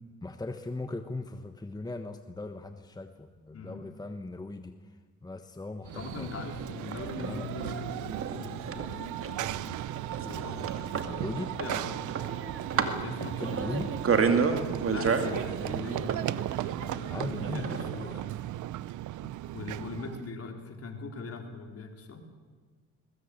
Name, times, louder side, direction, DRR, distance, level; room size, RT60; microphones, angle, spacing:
voice 1, 0.2-6.3 7.1-7.5 11.1-11.5 13.4-13.9 17.1-17.8, left 2 dB, 15° left, 8 dB, 1.2 m, -38 dB
voice 2, 3.5-3.8 5.9-9.9 10.2-11.3 11.6-12.4 12.7-14.2 14.7-16.1 16.6-18.3 19.2-22.2, left 4 dB, 50° left, 3 dB, 4.3 m, -41 dB
Run / Train, 5.8-20.3, right 14 dB, 75° right, 0.7 m, -36 dB
sound 1, 6.6-18.2, right 5 dB, 45° right, 2.3 m, -32 dB
22.0 x 20.5 x 8.7 m, 1.4 s
cardioid pair, 90°, 30 cm